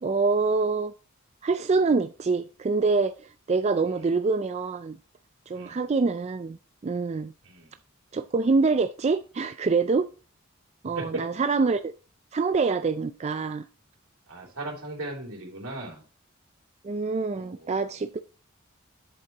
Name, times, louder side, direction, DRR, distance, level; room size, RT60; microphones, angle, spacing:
voice 1, 0.0-0.9 1.4-5.0 5.5-7.3 8.1-10.1 10.8-11.9 12.3-13.6 16.8-18.2, right 4 dB, 30° right, 0.4 m, -25 dB
voice 2, 7.4-7.7 10.9-11.0 14.3-16.0 17.3-17.9, right 2 dB, 80° right, 3.2 m, -38 dB
7.8 x 7.6 x 2.9 m
head